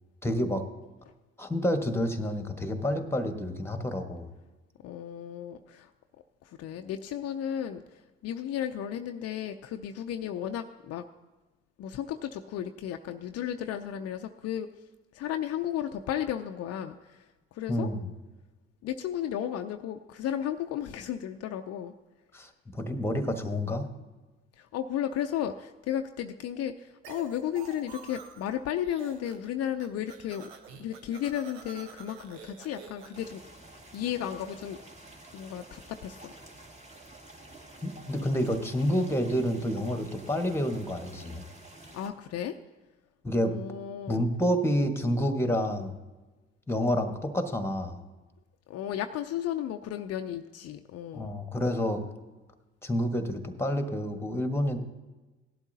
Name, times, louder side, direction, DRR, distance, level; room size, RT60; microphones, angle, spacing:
voice 1, 0.2-0.6 1.4-4.3 17.7-18.0 22.3-23.9 37.8-41.4 43.2-43.6 44.1-45.9 46.7-48.0 51.1-52.0 52.8-54.8, equal, 10° left, 7 dB, 1.4 m, -29 dB
voice 2, 4.8-5.9 6.4-11.0 11.8-14.7 15.1-17.3 17.5-17.9 18.8-21.9 24.6-30.5 30.8-33.4 33.9-34.8 35.3-36.3 41.9-42.6 43.4-44.2 48.7-51.3, left 10 dB, 50° left, 7 dB, 0.6 m, -34 dB
sound 1, 27.0-28.5 28.8-29.5 29.7-33.3, right 6 dB, 80° right, 1.0 m, -48 dB
sound 2, 33.1-42.1, right 2 dB, 20° right, 1.9 m, -50 dB
17.0 x 11.5 x 2.8 m, 1.2 s
hypercardioid pair, 50°, 32 cm